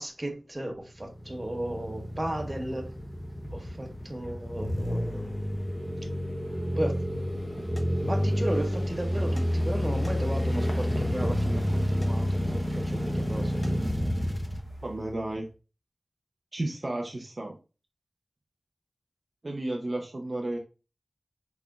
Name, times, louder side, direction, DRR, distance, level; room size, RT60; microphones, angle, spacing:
voice 1, 0.0-2.9 3.5-5.4 6.8-7.0 7.3-7.7 8.0-13.6, right 1 dB, 30° right, 1.1 m, -35 dB
sound 1, 1.0-15.3, equal, 5° right, 0.9 m, -29 dB
sound 2, 7.7-7.9 9.4-9.5 10.0-10.5 12.0-12.1 13.6-13.8, equal, 20° left, 2.2 m, -49 dB
voice 2, 14.8-15.5 16.5-17.6 19.4-20.6, right 1 dB, 50° right, 0.8 m, -33 dB
5.9 x 3.6 x 2.3 m
wide cardioid pair, 50°, 0 cm